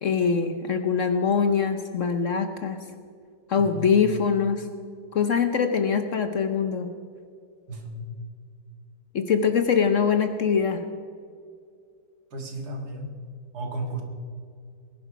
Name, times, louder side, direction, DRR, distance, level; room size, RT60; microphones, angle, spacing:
voice 1, 0.0-2.8 3.5-4.7 5.1-6.9 9.1-10.8, left 6 dB, 55° left, 8 dB, 1.0 m, -23 dB
voice 2, 3.6-3.9 7.7-8.1 12.3-13.1 13.5-14.0, right 2 dB, 65° right, 4 dB, 2.3 m, -34 dB
20.5 x 11.0 x 5.1 m, 2.3 s
omnidirectional pair, 1.8 m